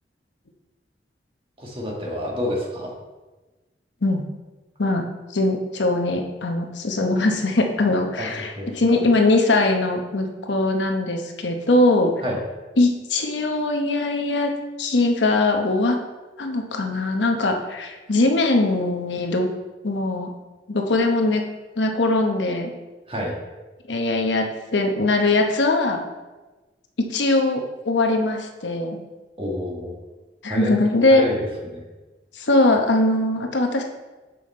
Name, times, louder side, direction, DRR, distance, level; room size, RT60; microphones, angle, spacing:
voice 1, 1.6-2.9 8.2-9.0 12.2-12.4 23.1-23.4 29.4-29.9 30.5-30.7 31.1-31.8, left 1 dB, 30° right, -2 dB, 1.6 m, -29 dB
voice 2, 5.3-12.1 12.8-14.5 14.8-16.0 16.4-19.5 19.8-20.3 20.7-21.4 21.8-22.7 23.9-24.5 24.7-26.0 27.0-29.0 30.4-31.3 32.4-33.8, left 2 dB, 90° left, 3 dB, 0.9 m, -21 dB
6.9 x 5.6 x 4.3 m, 1.2 s
head